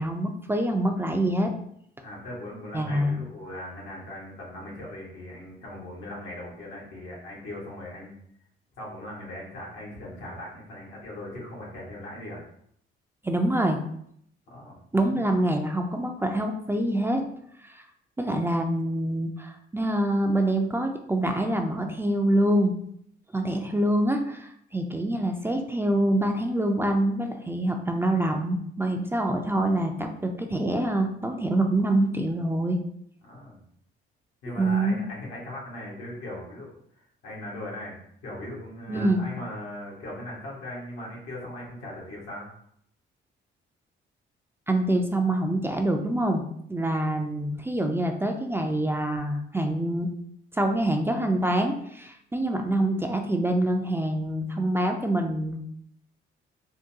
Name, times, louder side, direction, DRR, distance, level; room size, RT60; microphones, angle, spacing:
voice 1, 0.0-1.5 2.7-3.2 13.2-13.8 14.9-17.2 17.6-17.8 18.2-22.7 23.3-32.8 34.6-35.0 38.9-39.2 44.7-50.1 50.5-55.6, right 1 dB, 10° right, 4 dB, 0.3 m, -25 dB
voice 2, 2.0-8.1 8.8-12.4 14.5-14.8 33.2-33.6 34.4-42.5, left 1 dB, 85° left, -4 dB, 1.2 m, -39 dB
3.7 x 2.2 x 2.6 m, 0.69 s
cardioid pair, 90°, 20 cm